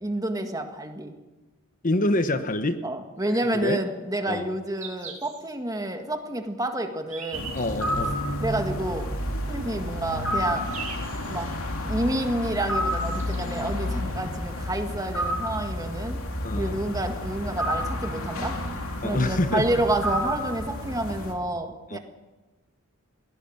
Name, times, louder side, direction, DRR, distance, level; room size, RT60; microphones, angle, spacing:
voice 1, 0.0-1.1 2.8-7.5 8.4-9.1 9.5-10.7 11.3-11.5 11.9-16.2 16.6-18.6 19.0-22.0, right 1 dB, 15° right, 5 dB, 1.8 m, -29 dB
voice 2, 1.8-2.8 3.5-3.8 4.3-4.5 7.5-8.1 16.4-16.8 19.0-19.7 21.9-22.0, left 2 dB, 35° left, 9 dB, 1.1 m, -26 dB
sound 1, 3.3-3.5 4.3-4.4 4.8-5.4 5.9-6.0 6.8-8.1 8.9-9.0 9.7-9.8 10.1-11.4 12.6-12.7 12.9-13.6 15.1-15.2 15.4-15.5 16.2-16.3, right 5 dB, 35° right, 5.2 m, -41 dB
sound 2, 7.3-21.3, left 1 dB, 65° left, 3.4 m, -30 dB
22.0 x 17.5 x 7.3 m, 1.2 s
head